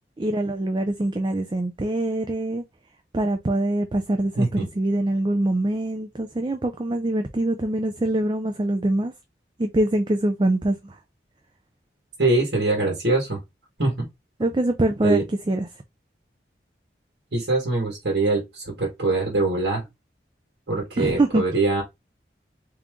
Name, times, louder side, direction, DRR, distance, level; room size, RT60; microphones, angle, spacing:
voice 1, 0.2-2.6 3.1-9.1 9.6-11.0 14.4-15.7 21.0-21.4, right 1 dB, 25° right, 0.4 m, -24 dB
voice 2, 4.4-4.7 12.2-13.4 13.8-14.1 15.0-15.2 17.3-19.8 20.7-21.8, right 2 dB, 80° right, 1.6 m, -23 dB
3.7 x 2.9 x 3.6 m
head